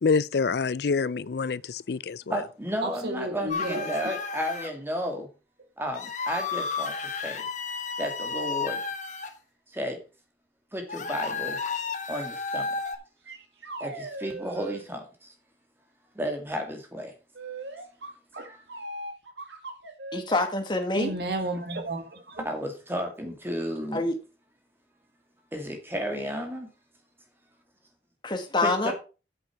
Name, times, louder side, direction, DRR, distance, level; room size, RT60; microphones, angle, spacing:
voice 1, 0.0-2.2, left 5 dB, 65° left, 0.4 m, -26 dB
voice 2, 2.3-5.3 5.8-7.4 8.0-8.8 9.7-10.0 10.7-11.6 12.1-12.7 13.8-15.3 16.1-17.1 18.4-18.6 22.4-24.1 25.5-26.7 28.6-28.9, equal, 15° right, 2.4 m, -33 dB
voice 3, 2.8-4.1 21.0-22.4, right 2 dB, 60° right, 1.9 m, -32 dB
sound 1, 3.5-4.7 5.9-9.3 10.9-13.0, left 4 dB, 45° left, 1.3 m, -32 dB
sound 2, 12.8-12.9 13.3-14.8 17.4-20.4, right 2 dB, 80° right, 2.1 m, -39 dB
voice 4, 20.1-21.1 23.9-24.1 28.2-28.9, left 2 dB, 25° left, 1.9 m, -26 dB
9.1 x 7.8 x 4.7 m
head